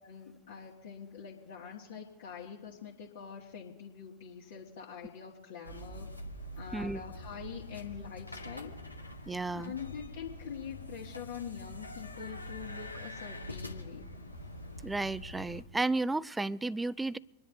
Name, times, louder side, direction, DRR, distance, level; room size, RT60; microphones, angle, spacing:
voice 1, 0.0-6.1 6.6-8.7 9.5-14.0, left 7 dB, 55° left, -4 dB, 1.7 m, -44 dB
sound 1, 5.6-15.6, left 1 dB, 85° left, 1.3 m, -45 dB
voice 2, 9.3-9.7 14.8-17.2, right 2 dB, 10° right, 21 dB, 0.4 m, -33 dB
25.5 x 10.5 x 3.5 m, 1.0 s
figure-of-eight pair, 90°, 0 cm